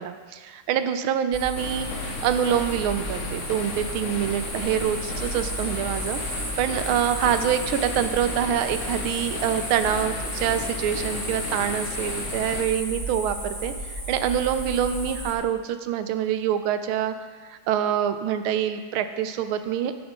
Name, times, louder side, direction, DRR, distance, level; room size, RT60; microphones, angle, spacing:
voice 1, 0.0-6.2 6.6-13.7 14.1-17.1 17.5-19.9, right 9 dB, 80° right, 9 dB, 1.4 m, -25 dB
sound 1, 1.3-15.3, right 1 dB, 15° right, 0.9 m, -33 dB
sound 2, 1.6-12.6, left 5 dB, 85° left, 0.6 m, -35 dB
13.5 x 6.1 x 3.6 m, 1.5 s
omnidirectional pair, 2.4 m